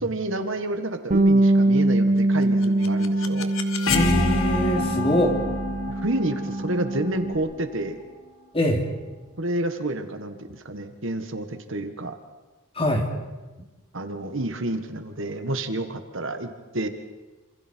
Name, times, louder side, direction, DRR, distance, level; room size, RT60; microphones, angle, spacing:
voice 1, 0.0-3.5 5.9-8.0 9.4-12.1 13.9-16.9, right 1 dB, 60° right, 7 dB, 1.8 m, -29 dB
Bass guitar, 1.1-7.4, right 2 dB, 35° right, 1.2 m, -23 dB
sound 1, 2.4-8.3, left 3 dB, 65° left, 1.6 m, -28 dB
voice 2, 3.9-5.4 8.5-8.8 12.7-13.0, equal, 25° left, 2 dB, 3.0 m, -23 dB
27.5 x 27.5 x 4.7 m, 1.2 s
head